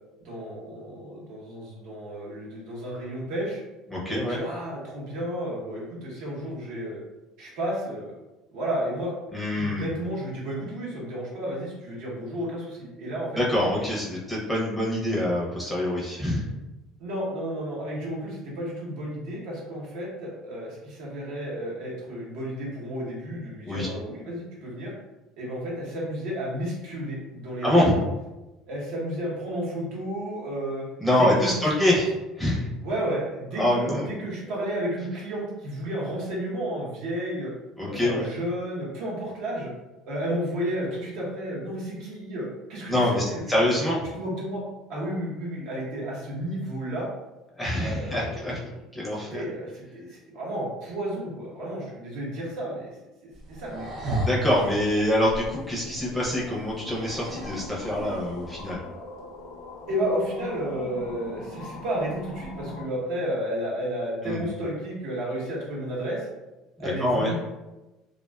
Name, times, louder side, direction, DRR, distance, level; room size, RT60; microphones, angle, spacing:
voice 1, 0.2-3.6 4.0-7.0 7.4-8.1 8.5-9.1 9.6-13.4 17.0-24.9 25.4-28.0 28.7-30.8 31.2-32.0 32.8-37.5 37.9-39.7 40.0-43.6 44.1-44.6 44.9-47.1 47.8-48.6 49.3-52.9 53.2-53.9 59.9-66.3 66.8-67.3, equal, 70° right, -4 dB, 0.9 m, -32 dB
voice 2, 3.9-4.4 9.3-9.9 13.3-16.4 23.7-23.9 27.6-28.0 31.0-32.1 32.4-32.7 33.6-34.1 37.8-38.3 42.9-43.2 43.5-44.1 47.6-48.6 48.9-49.4 53.7-53.9 54.2-58.8 64.2-64.5 66.8-67.3, left 1 dB, ahead, -6 dB, 0.5 m, -25 dB
sound 1, 53.3-58.7, right 1 dB, 45° right, 0.5 m, -36 dB
sound 2, 54.1-62.8, left 2 dB, 75° left, 0.5 m, -41 dB
2.4 x 2.3 x 2.2 m, 1.0 s
cardioid pair, 140°, 0 cm